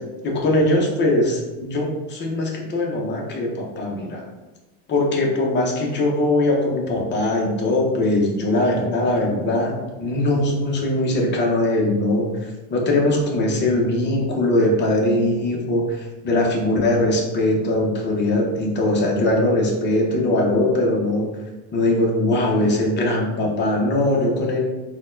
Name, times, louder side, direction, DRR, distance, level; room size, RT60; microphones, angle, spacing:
voice 1, 0.2-4.3 4.9-21.3 21.7-24.6, left 1 dB, 25° left, -1 dB, 0.7 m, -21 dB
4.0 x 2.3 x 2.5 m, 1.1 s
supercardioid pair, 115°, 44 cm